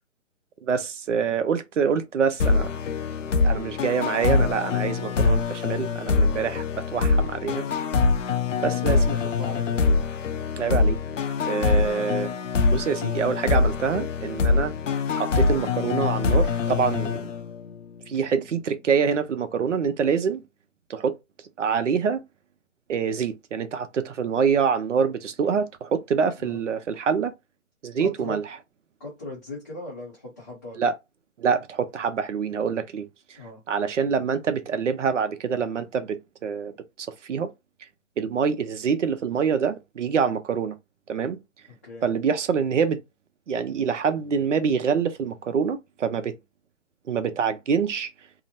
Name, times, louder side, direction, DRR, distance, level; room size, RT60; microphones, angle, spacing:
voice 1, 0.6-2.7 3.4-7.7 8.6-9.0 10.6-11.0 11.5-12.3 12.7-14.7 15.1-17.3 18.1-20.4 20.9-21.2 21.6-22.2 22.9-27.3 27.8-28.4 30.8-30.9 31.4-33.1 33.7-36.7 37.0-37.5 38.2-40.7 41.1-41.4 42.0-43.0 43.5-46.4 47.1-48.1, right 6 dB, 65° right, 0.6 m, -25 dB
sound 1, 2.4-17.8, left 4 dB, 70° left, 0.6 m, -24 dB
voice 2, 8.5-9.8 11.7-12.1 26.4-26.6 28.0-28.4 29.0-30.9 33.4-33.6 41.8-42.0, left 2 dB, 15° left, 0.5 m, -38 dB
2.8 x 2.0 x 2.7 m
figure-of-eight pair, 145°, 39 cm